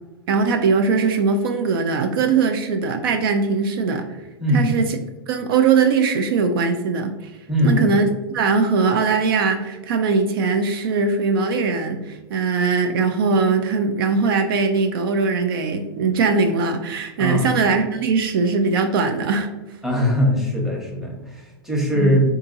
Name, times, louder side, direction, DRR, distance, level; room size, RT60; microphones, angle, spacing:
voice 1, 0.3-4.2 4.5-5.0 5.3-8.0 8.3-19.5 21.9-22.2, right 4 dB, 60° right, 6 dB, 0.4 m, -20 dB
voice 2, 4.4-4.8 7.5-7.8 17.2-17.4 19.8-22.2, equal, 5° right, -2 dB, 0.8 m, -20 dB
3.7 x 2.7 x 2.5 m, 1.1 s
hypercardioid pair, 120°, 13 cm